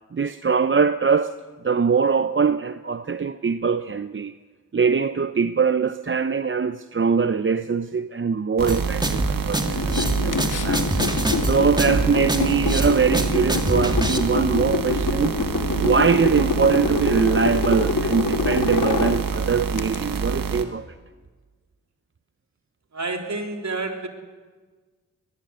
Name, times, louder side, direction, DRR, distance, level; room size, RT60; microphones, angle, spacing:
voice 1, 0.1-1.4 1.6-4.3 4.7-11.1 11.4-15.4 15.8-20.9, right 5 dB, 35° right, 0.7 m, -22 dB
sound 1, 8.6-20.6, right 6 dB, 80° right, 1.5 m, -27 dB
sound 2, 8.7-14.2, right 1 dB, 15° right, 2.4 m, -25 dB
sound 3, 9.7-20.0, left 5 dB, 65° left, 1.7 m, -26 dB
voice 2, 22.9-24.1, right 3 dB, 55° right, 3.5 m, -29 dB
22.0 x 20.0 x 8.1 m
cardioid pair, 45°, 33 cm